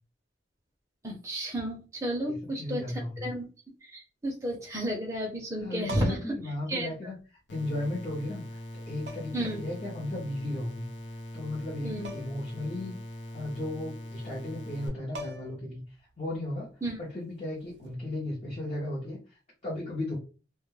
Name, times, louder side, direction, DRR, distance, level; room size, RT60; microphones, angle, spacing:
voice 1, 1.0-3.5 3.8-6.2 6.7-6.9 9.3-9.6 11.8-12.1 16.8-17.0, right 1 dB, 15° right, -1 dB, 0.6 m, -32 dB
voice 2, 2.3-3.3 5.6-7.2 7.5-10.9 11.3-13.0 13.3-16.7 17.0-20.2, left 1 dB, 35° left, -4 dB, 0.7 m, -35 dB
sound 1, 5.8-6.4 7.8-7.9 9.1-9.5 12.0-12.5 12.8-12.9 14.7-14.8 15.1-15.7 17.7-17.9, right 1 dB, 60° right, 0.4 m, -41 dB
sound 2, 7.5-14.9, left 1 dB, 70° left, 0.6 m, -42 dB
2.2 x 2.1 x 3.1 m, 0.34 s
head